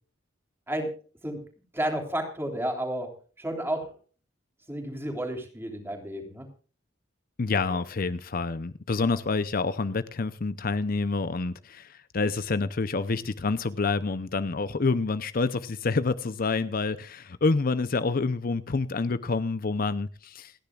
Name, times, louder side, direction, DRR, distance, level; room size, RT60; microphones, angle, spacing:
voice 1, 1.7-3.1 3.4-3.9 4.7-6.5, right 1 dB, 15° right, 4 dB, 3.4 m, -31 dB
voice 2, 7.4-20.5, left 3 dB, 50° left, 13 dB, 0.6 m, -28 dB
29.0 x 10.0 x 2.4 m, 0.39 s
head